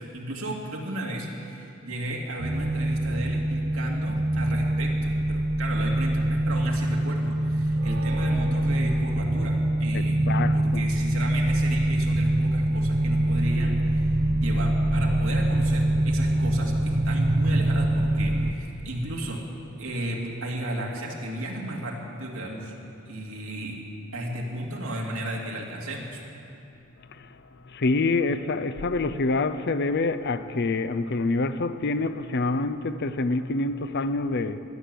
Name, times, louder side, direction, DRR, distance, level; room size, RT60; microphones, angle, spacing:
voice 1, 0.0-10.2 10.5-19.5 19.8-22.7 23.1-23.8 24.1-26.2, right 1 dB, 70° right, 2.4 m, -33 dB
sound 1, 2.4-18.5, right 1 dB, 50° right, 0.9 m, -24 dB
voice 2, 9.9-10.8 27.1-27.4 27.6-34.6, left 3 dB, 50° left, 0.6 m, -26 dB
16.5 x 11.0 x 7.6 m
head